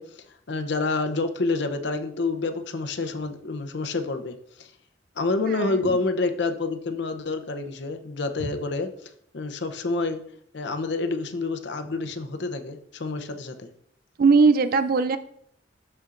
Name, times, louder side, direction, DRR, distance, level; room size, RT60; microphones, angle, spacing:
voice 1, 0.0-4.7 5.2-10.2 10.5-13.7, left 3 dB, 65° left, 8 dB, 0.7 m, -28 dB
voice 2, 5.6-5.9 14.2-15.2, right 4 dB, 50° right, 12 dB, 0.4 m, -19 dB
12.0 x 4.4 x 2.5 m, 0.67 s
head